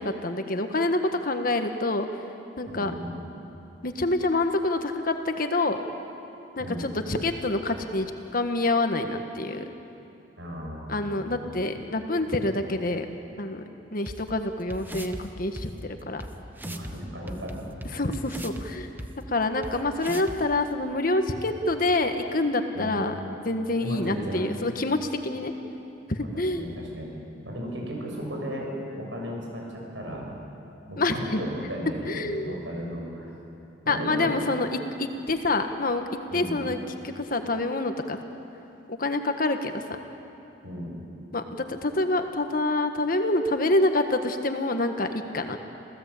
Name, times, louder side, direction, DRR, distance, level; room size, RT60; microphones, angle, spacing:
voice 1, 0.0-2.1 2.6-2.9 3.8-5.8 6.6-9.7 10.9-13.1 13.4-13.6 13.9-16.2 17.9-18.9 19.3-23.2 23.4-25.5 26.1-26.6 31.0-31.4 32.1-32.5 33.9-36.0 36.3-38.2 38.9-40.0 41.3-45.6, left 2 dB, 50° left, 6 dB, 1.5 m, -27 dB
voice 2, 2.7-3.1 6.6-6.8 10.4-11.0 11.7-12.0 16.6-17.7 22.7-23.0 23.8-24.5 26.2-27.1 27.4-30.3 30.9-33.3 33.8-34.4 36.3-36.6 40.6-40.9, equal, 90° right, -1 dB, 6.8 m, -35 dB
sound 1, 14.1-14.2 14.7-15.2 15.6-15.7 16.2-16.3 16.6-16.9 17.3-18.6 19.0-19.1 19.6-19.7 20.0-20.4, right 1 dB, 10° right, 1.2 m, -36 dB
27.5 x 16.5 x 8.5 m, 2.8 s
head